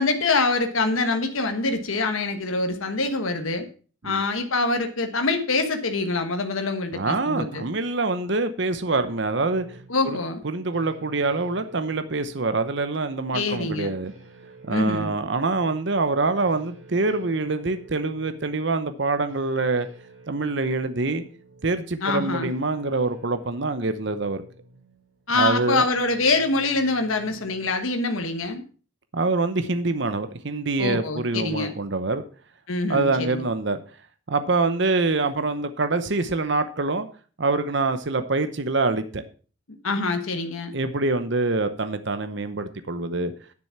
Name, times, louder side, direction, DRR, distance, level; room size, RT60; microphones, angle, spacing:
voice 1, 0.0-3.7 4.0-7.6 9.9-10.4 13.3-13.9 14.7-15.1 22.0-22.5 25.3-28.6 30.8-31.7 32.7-33.4 39.8-40.7, left 3 dB, 80° left, 6 dB, 1.3 m, -25 dB
voice 2, 6.9-9.8 10.0-10.2 10.4-14.1 14.6-19.9 20.3-21.2 21.6-24.4 25.4-25.9 29.1-32.2 32.9-33.8 34.3-37.1 37.4-39.2 40.7-43.3, right 3 dB, 55° right, 10 dB, 0.8 m, -25 dB
sound 1, 8.9-27.8, right 2 dB, 85° right, 5.9 m, -50 dB
9.9 x 7.4 x 5.8 m, 0.38 s
head